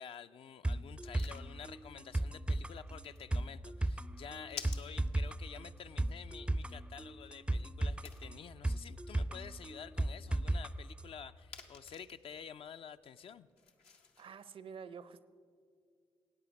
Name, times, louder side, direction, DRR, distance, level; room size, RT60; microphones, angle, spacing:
voice 1, 0.0-13.5, left 7 dB, 60° left, 11 dB, 0.4 m, -50 dB
sound 1, 0.6-10.7 11.0-11.1, right 1 dB, 10° right, 0.4 m, -36 dB
sound 2, 1.1-14.3, left 5 dB, 85° left, 0.8 m, -56 dB
voice 2, 14.2-15.3, right 6 dB, 60° right, 15 dB, 0.5 m, -48 dB
14.0 x 8.7 x 5.2 m, 2.1 s
supercardioid pair, 45°, 10 cm